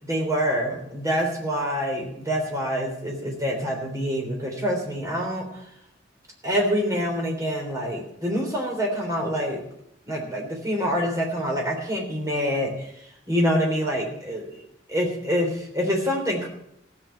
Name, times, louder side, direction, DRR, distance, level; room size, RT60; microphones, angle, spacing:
voice 1, 0.0-5.6 6.4-9.6 10.1-12.9 13.3-14.6 14.9-16.5, equal, 15° right, 0 dB, 3.4 m, -26 dB
15.5 x 6.9 x 8.8 m, 0.74 s
head